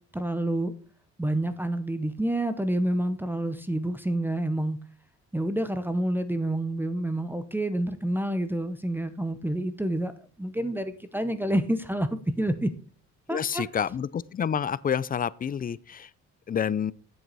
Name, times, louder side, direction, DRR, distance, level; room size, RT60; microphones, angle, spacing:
voice 1, 0.1-0.7 1.2-4.8 5.3-10.1 10.4-12.1 12.4-12.7 13.3-13.6, right 1 dB, 5° right, 0.8 m, -28 dB
voice 2, 13.3-16.1 16.5-16.9, left 8 dB, 30° left, 0.4 m, -28 dB
7.8 x 7.8 x 4.0 m
cardioid pair, 90°, 30 cm